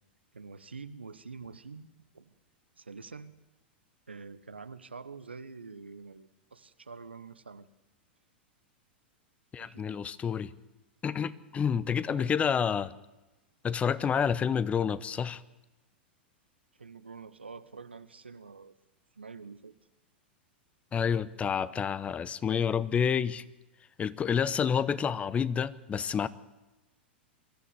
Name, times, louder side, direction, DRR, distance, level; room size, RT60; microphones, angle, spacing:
voice 1, 0.3-1.9 2.1-2.3 2.8-3.3 4.1-7.7 9.6-9.9 12.1-12.3 16.8-18.8 19.2-19.7, right 4 dB, 85° right, 13 dB, 1.1 m, -46 dB
voice 2, 9.5-10.5 11.0-12.9 13.6-15.4 20.9-23.4 24.0-26.3, left 7 dB, 20° left, 18 dB, 0.9 m, -29 dB
24.0 x 13.5 x 8.2 m, 1.1 s
figure-of-eight pair, 95°, 6 cm